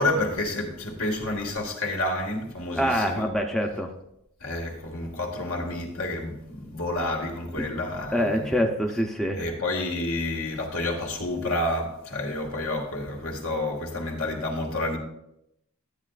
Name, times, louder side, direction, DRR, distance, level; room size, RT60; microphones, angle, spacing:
voice 1, 0.0-3.2 4.4-8.6 9.4-15.0, left 2 dB, 70° left, 1.9 m, -29 dB
voice 2, 2.7-3.9 7.5-7.7 8.1-9.5, equal, ahead, 0.6 m, -25 dB
12.5 x 8.8 x 2.4 m
head